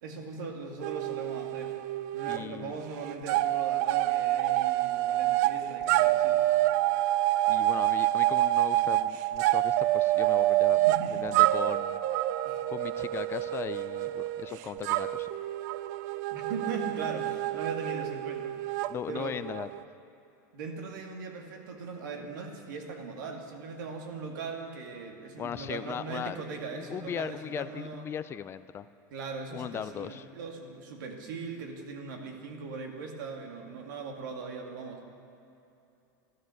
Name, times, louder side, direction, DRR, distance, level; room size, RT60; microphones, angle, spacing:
voice 1, 0.0-1.8 2.1-6.5 10.8-11.4 12.5-12.7 16.3-18.5 19.1-19.4 20.5-28.1 29.1-35.1, right 4 dB, 80° right, 2 dB, 2.3 m, -39 dB
sound 1, 0.8-2.4 2.7-19.8, right 15 dB, 65° right, 0.4 m, -27 dB
voice 2, 2.3-2.7 7.5-10.8 11.1-12.0 12.7-15.3 18.9-19.7 25.4-26.4 26.7-28.9 29.5-30.2, left 9 dB, 25° left, 14 dB, 0.4 m, -38 dB
14.5 x 13.0 x 6.5 m, 2.8 s
supercardioid pair, 140°, 10 cm